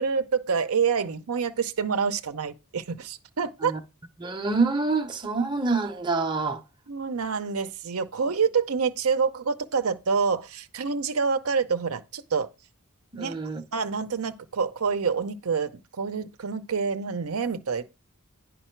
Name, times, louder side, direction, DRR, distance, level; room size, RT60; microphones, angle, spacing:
voice 1, 0.0-3.7 6.9-12.5 13.2-13.4 13.7-15.7 16.0-17.8, right 5 dB, 70° right, 0.6 m, -27 dB
voice 2, 4.2-6.6 13.1-13.6, right 3 dB, 20° right, 0.7 m, -26 dB
9.9 x 5.2 x 4.5 m
head